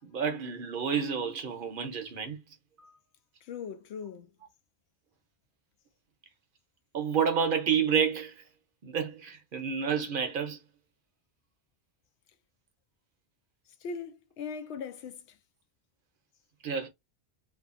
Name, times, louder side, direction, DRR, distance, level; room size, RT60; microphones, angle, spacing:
voice 1, 0.0-2.4 6.9-8.3 8.8-10.6 16.6-16.9, right 7 dB, 60° right, 0.8 m, -29 dB
voice 2, 3.4-4.3 13.8-15.4, left 5 dB, 85° left, 0.9 m, -40 dB
2.6 x 2.3 x 2.4 m
omnidirectional pair, 1.1 m